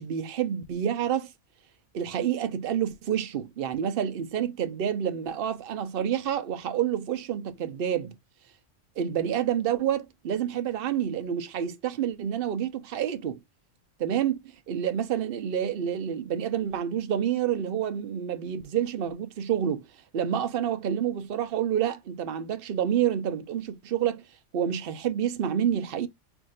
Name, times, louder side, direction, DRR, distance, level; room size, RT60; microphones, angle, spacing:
voice 1, 0.0-1.3 1.9-8.1 9.0-13.4 14.0-14.4 14.7-19.8 20.1-24.2 24.5-26.1, right 9 dB, 55° right, 0.8 m, -28 dB
5.9 x 2.6 x 2.4 m
omnidirectional pair, 1.3 m